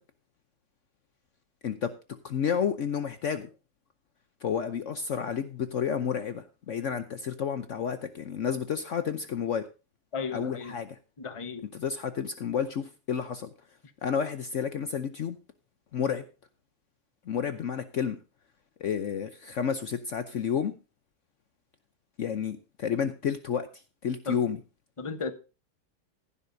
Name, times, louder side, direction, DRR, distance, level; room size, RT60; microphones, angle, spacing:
voice 1, 2.2-3.5 4.4-9.6 10.3-11.0 11.7-13.5 14.0-15.4 15.9-16.2 17.3-18.2 18.8-20.7 22.2-23.7 24.0-24.6, left 7 dB, 85° left, 0.6 m, -30 dB
voice 2, 10.1-10.8 11.2-11.7 24.3-24.4 25.0-25.3, left 4 dB, 25° left, 0.7 m, -34 dB
15.5 x 11.5 x 2.7 m
omnidirectional pair, 2.4 m